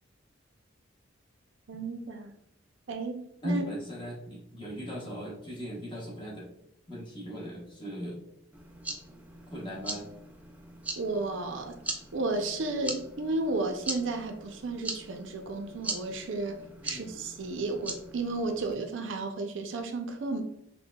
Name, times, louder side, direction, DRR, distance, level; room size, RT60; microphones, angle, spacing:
voice 1, 1.7-2.4 2.9-3.7 11.0-11.7 12.1-20.4, right 3 dB, 70° right, 0.5 m, -33 dB
voice 2, 3.4-6.5 6.9-8.3 9.5-10.1 16.8-17.1, equal, 25° left, 0.8 m, -38 dB
sound 1, 8.5-18.7, right 2 dB, 10° right, 0.3 m, -41 dB
5.5 x 2.2 x 2.2 m
head